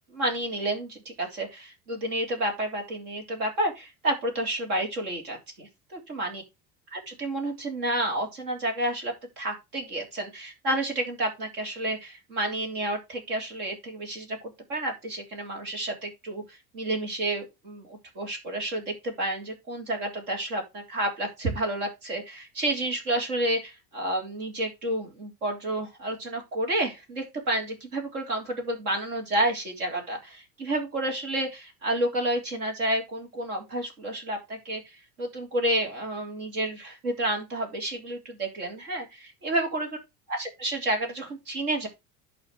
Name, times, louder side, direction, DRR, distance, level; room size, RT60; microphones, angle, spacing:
voice 1, 0.1-6.4 6.9-14.4 14.7-40.0 40.3-41.9, right 1 dB, 75° right, 3 dB, 3.5 m, -30 dB
11.5 x 4.3 x 5.0 m, 0.23 s
hypercardioid pair, 75°, 45 cm